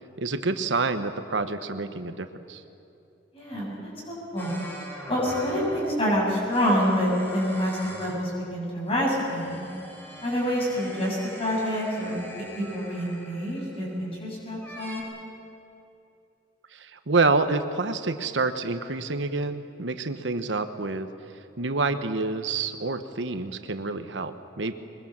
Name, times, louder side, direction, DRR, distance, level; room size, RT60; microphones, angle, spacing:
voice 1, 0.2-2.6 16.7-21.1 21.6-24.7, right 3 dB, 85° right, 9 dB, 1.1 m, -27 dB
voice 2, 3.3-4.6 5.1-9.6 10.2-15.0, equal, 30° left, -3 dB, 7.3 m, -27 dB
sound 1, 4.4-5.9 6.5-8.3 8.6-14.1 14.6-15.0, equal, 10° left, 3.4 m, -43 dB
23.0 x 21.5 x 7.4 m, 2.8 s
head